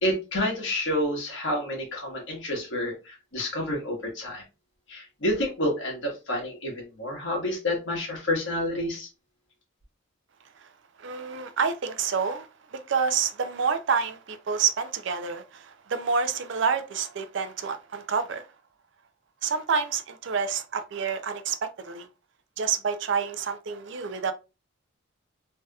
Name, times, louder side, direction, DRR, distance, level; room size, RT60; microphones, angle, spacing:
voice 1, 0.0-4.4 4.9-9.1, left 1 dB, 65° left, 1.4 m, -29 dB
voice 2, 11.0-18.5 19.4-22.1 22.6-24.3, right 6 dB, 65° right, 0.4 m, -28 dB
3.3 x 2.8 x 2.3 m
head